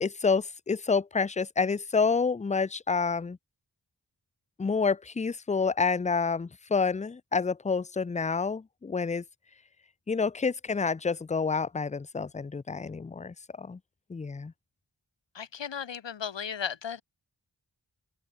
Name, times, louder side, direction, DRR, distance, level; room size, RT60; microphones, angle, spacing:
voice 1, 0.0-3.4 4.6-9.2 10.1-13.8 14.1-14.5, left 5 dB, 20° left, 0.3 m, -28 dB
voice 2, 15.3-17.0, left 7 dB, 70° left, 0.9 m, -35 dB
open air
wide cardioid pair, 50°, 45 cm